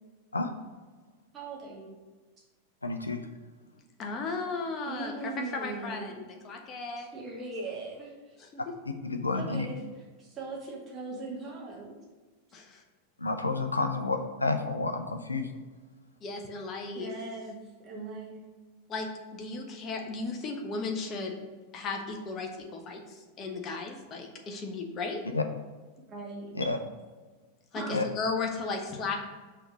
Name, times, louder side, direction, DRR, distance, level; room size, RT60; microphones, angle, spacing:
voice 1, 1.3-2.0 4.9-6.2 7.0-8.4 9.3-11.9 16.9-17.6 17.8-18.5 26.1-26.6 27.7-27.9, right 3 dB, 25° right, -4 dB, 2.0 m, -40 dB
voice 2, 2.8-3.2 9.0-9.7 13.2-15.5 25.3-25.4 26.5-26.8 27.9-28.0, left 3 dB, 80° left, 6 dB, 0.6 m, -30 dB
voice 3, 4.0-7.1 8.4-8.7 12.5-12.8 16.2-17.1 18.9-19.1 19.3-21.4 21.7-25.2 26.6-26.7 27.7-29.2, left 3 dB, 30° left, 3 dB, 1.1 m, -35 dB
5.7 x 4.1 x 6.2 m, 1.3 s
figure-of-eight pair, 90°, 0 cm